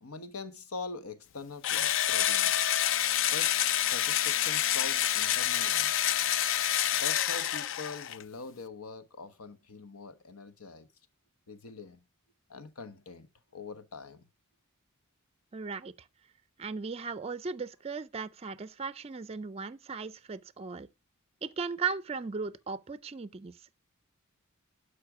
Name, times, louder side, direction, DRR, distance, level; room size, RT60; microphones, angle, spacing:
voice 1, 0.0-2.6 3.3-6.1 7.0-10.9 11.5-12.0 12.5-13.3 13.5-14.2, left 3 dB, 90° left, 1.1 m, -43 dB
Engine / Drill, 1.6-8.2, left 11 dB, 60° left, 0.4 m, -28 dB
voice 2, 15.5-15.9 16.6-20.9 21.4-23.8, right 5 dB, 30° right, 0.4 m, -37 dB
12.0 x 5.1 x 4.7 m
head